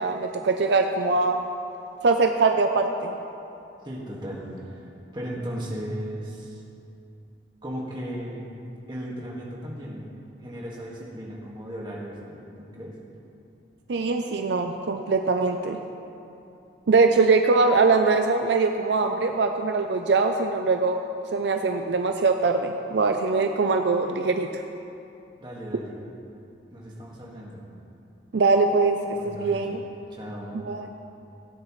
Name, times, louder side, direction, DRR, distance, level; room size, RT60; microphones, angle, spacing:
voice 1, 0.0-1.4 2.0-3.2 13.9-15.8 16.9-21.0 21.3-24.5 28.3-29.0 29.2-29.8 30.5-30.9, right 4 dB, 70° right, 5 dB, 0.5 m, -22 dB
voice 2, 3.8-4.9 5.1-6.6 7.6-8.5 8.9-10.1 10.4-12.9 25.4-26.0 26.7-27.6 29.1-29.8 30.1-30.6, equal, 25° right, -4 dB, 1.8 m, -36 dB
16.5 x 9.7 x 3.2 m, 2.7 s
head